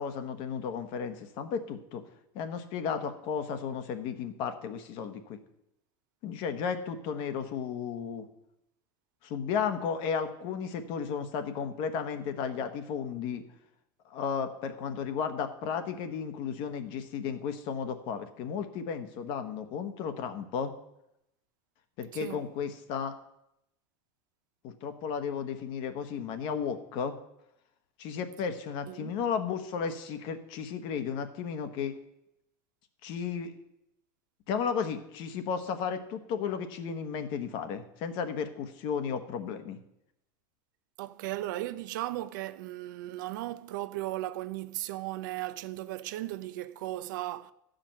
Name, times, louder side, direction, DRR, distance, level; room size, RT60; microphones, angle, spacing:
voice 1, 0.0-2.0 2.3-5.4 6.2-8.3 9.2-13.4 14.0-20.7 22.0-23.2 24.6-27.1 28.0-31.9 33.0-33.5 34.5-39.8, left 6 dB, 50° left, 1.2 m, -34 dB
voice 2, 41.0-47.5, right 15 dB, 80° right, 0.6 m, -36 dB
13.0 x 5.1 x 7.5 m
supercardioid pair, 145°, 10 cm